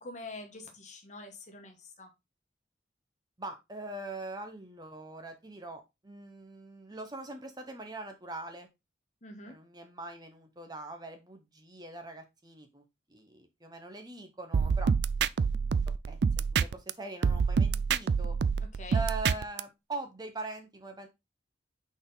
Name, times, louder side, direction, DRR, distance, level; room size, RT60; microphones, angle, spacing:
voice 1, 0.0-2.1 9.2-9.6 18.8-19.0, left 2 dB, 40° left, 4 dB, 1.4 m, -45 dB
voice 2, 3.4-8.7 9.5-12.8 13.1-14.9 15.2-15.3 16.1-18.4 18.9-21.1, right 2 dB, 20° right, 6 dB, 0.9 m, -42 dB
sound 1, 14.5-16.9 17.2-19.6, right 6 dB, 70° right, 0.4 m, -27 dB
5.9 x 4.2 x 3.9 m, 0.22 s
head